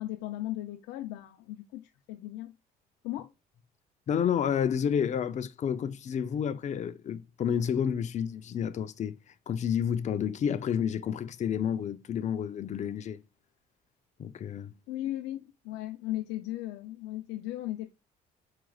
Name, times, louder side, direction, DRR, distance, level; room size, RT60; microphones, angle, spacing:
voice 1, 0.0-2.5 3.0-3.3 14.9-17.9, left 15 dB, 85° left, 0.5 m, -37 dB
voice 2, 4.1-9.2 9.5-13.2 14.2-14.7, left 8 dB, 45° left, 0.6 m, -30 dB
4.9 x 4.7 x 2.3 m
cardioid pair, 110°, 17 cm